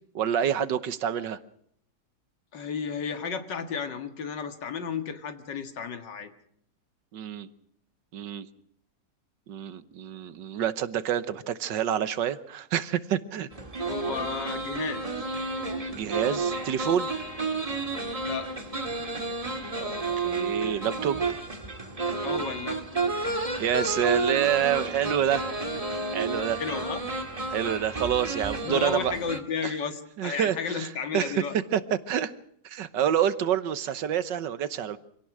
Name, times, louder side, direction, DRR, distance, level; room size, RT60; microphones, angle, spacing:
voice 1, 0.1-1.4 7.1-7.5 8.1-8.5 9.5-13.5 15.9-17.1 19.8-21.3 23.6-25.4 26.1-26.6 27.5-29.1 29.6-29.7 30.2-31.4 31.7-32.3 32.6-35.0, right 9 dB, 80° right, 14 dB, 1.7 m, -27 dB
voice 2, 2.5-6.3 13.9-15.1 18.2-18.5 22.2-23.5 26.6-27.0 28.6-31.6, left 6 dB, 75° left, 8 dB, 2.4 m, -33 dB
sound 1, 13.5-29.4, right 3 dB, 20° right, 1.9 m, -31 dB
26.0 x 17.5 x 6.2 m, 0.68 s
omnidirectional pair, 1.9 m